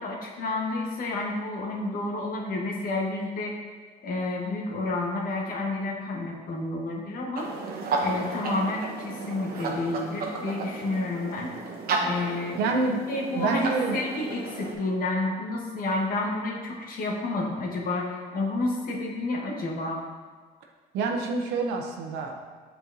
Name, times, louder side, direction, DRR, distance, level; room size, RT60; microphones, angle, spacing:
voice 1, 0.0-3.5 4.0-7.5 8.0-11.5 12.0-12.7 13.1-20.0, left 2 dB, 55° left, -1 dB, 1.2 m, -30 dB
sound 1, 7.4-14.7, right 3 dB, 65° right, 0.9 m, -33 dB
voice 2, 12.6-13.0 13.3-14.0 20.9-22.4, right 3 dB, 90° right, 2 dB, 0.7 m, -27 dB
7.8 x 4.4 x 2.7 m, 1.5 s
cardioid pair, 110°, 17 cm